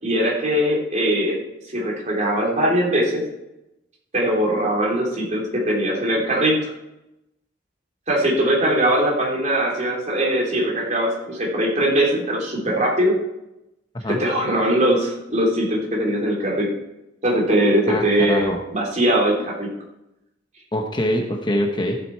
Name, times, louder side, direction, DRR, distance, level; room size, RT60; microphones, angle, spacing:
voice 1, 0.0-1.4 1.7-3.2 4.1-6.7 8.1-13.1 14.1-16.7 17.2-19.7, right 1 dB, 40° right, -2 dB, 3.3 m, -21 dB
voice 2, 17.9-18.6 20.7-22.0, equal, 25° left, 3 dB, 1.0 m, -24 dB
14.0 x 7.9 x 4.6 m, 0.91 s
head